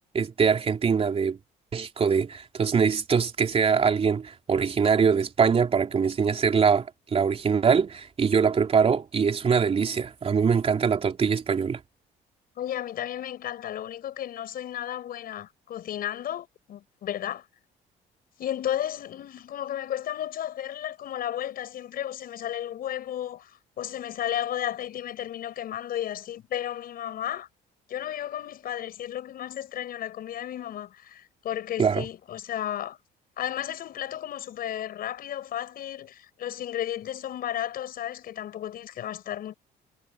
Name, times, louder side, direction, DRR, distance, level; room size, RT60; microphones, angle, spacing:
voice 1, 0.1-1.4 1.7-11.8 31.8-32.0, right 6 dB, 35° right, 3.4 m, -23 dB
voice 2, 12.6-17.5 18.4-23.5 23.8-27.5 27.9-33.0 33.4-39.5, left 11 dB, 60° left, 6.8 m, -33 dB
cardioid pair, 110°, 17 cm